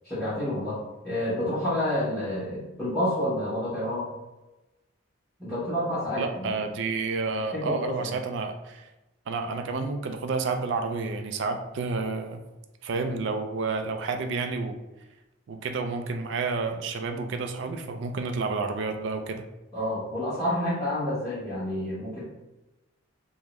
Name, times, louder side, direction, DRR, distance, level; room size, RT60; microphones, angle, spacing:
voice 1, 0.0-4.1 5.4-6.6 7.5-8.1 19.7-22.2, left 1 dB, 5° left, -13 dB, 0.9 m, -29 dB
voice 2, 6.2-8.9 9.3-12.4 12.8-14.8 15.5-19.4, right 4 dB, 60° right, 6 dB, 0.4 m, -30 dB
3.5 x 2.1 x 2.9 m, 1.0 s
head